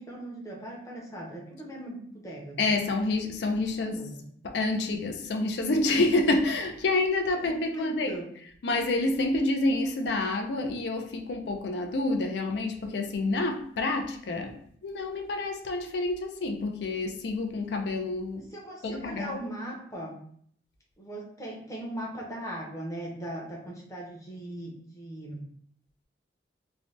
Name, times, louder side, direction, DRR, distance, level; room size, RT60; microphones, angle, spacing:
voice 1, 0.0-2.6 3.7-4.1 7.4-8.2 18.5-20.2 21.0-25.4, right 1 dB, 15° left, -3 dB, 0.7 m, -39 dB
voice 2, 2.6-4.1 4.4-8.2 8.6-18.5 18.8-19.4, left 2 dB, 65° left, 5 dB, 0.4 m, -28 dB
2.7 x 2.1 x 3.2 m, 0.62 s
head